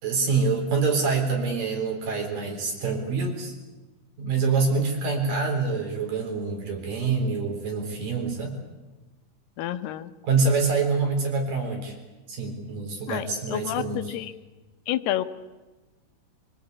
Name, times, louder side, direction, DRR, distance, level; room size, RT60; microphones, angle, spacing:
voice 1, 0.0-3.5 4.2-8.6 10.3-12.0 12.3-14.0, right 4 dB, 60° right, 2 dB, 5.6 m, -26 dB
voice 2, 9.6-10.1 13.1-14.3 14.9-15.2, left 13 dB, 85° left, 11 dB, 2.9 m, -29 dB
24.0 x 21.5 x 8.5 m, 1.2 s
omnidirectional pair, 4.5 m